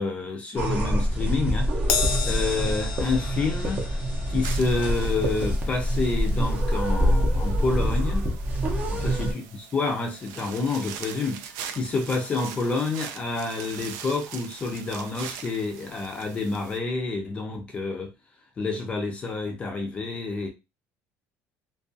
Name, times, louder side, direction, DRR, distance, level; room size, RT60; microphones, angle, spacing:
voice 1, 0.0-1.9 2.2-3.9 4.3-8.3 9.0-18.1 18.6-20.5, left 3 dB, 20° left, 0.4 m, -28 dB
sound 1, 0.6-9.3, equal, 30° right, 0.6 m, -25 dB
Crash cymbal, 1.9-8.5 8.8-9.1 10.1-10.2, left 6 dB, 80° left, 0.5 m, -34 dB
sound 2, 4.4-16.8, right 8 dB, 75° right, 0.3 m, -42 dB
2.4 x 2.2 x 2.5 m
cardioid pair, 165°, 5 cm